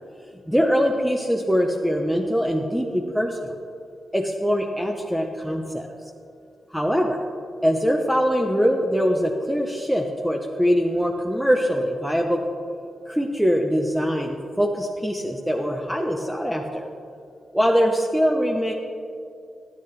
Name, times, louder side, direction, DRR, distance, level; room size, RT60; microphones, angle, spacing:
voice 1, 0.5-3.5 4.1-5.9 6.7-7.2 7.6-12.4 13.1-16.9 17.5-18.7, equal, ahead, 1 dB, 0.5 m, -22 dB
13.0 x 10.0 x 3.2 m, 2.5 s
wide cardioid pair, 130°, 0 cm